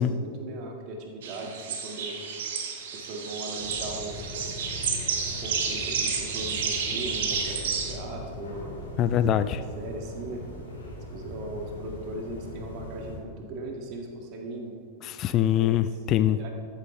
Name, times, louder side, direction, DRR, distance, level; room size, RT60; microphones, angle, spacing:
voice 1, 0.0-2.2 2.8-4.4 5.4-8.8 9.3-10.4 11.1-14.8 15.5-15.8 16.2-16.5, right 2 dB, 40° right, 1 dB, 1.7 m, -38 dB
sound 1, 1.2-7.9, right 6 dB, 55° right, 1.3 m, -31 dB
sound 2, 3.6-13.2, left 1 dB, 65° left, 2.4 m, -40 dB
voice 2, 9.0-9.6 15.0-16.4, left 11 dB, 35° left, 13 dB, 0.3 m, -23 dB
13.5 x 7.4 x 3.2 m, 2.4 s
figure-of-eight pair, 90°, 0 cm